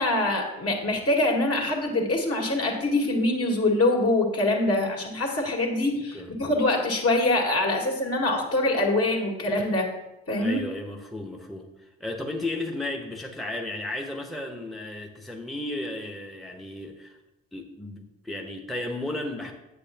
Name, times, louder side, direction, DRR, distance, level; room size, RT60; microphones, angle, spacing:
voice 1, 0.0-9.9 10.3-10.6, left 2 dB, 45° left, 0 dB, 2.1 m, -24 dB
voice 2, 10.4-17.2 17.5-19.5, left 2 dB, ahead, 2 dB, 1.1 m, -34 dB
8.4 x 8.3 x 2.9 m, 0.98 s
hypercardioid pair, 45°, 33 cm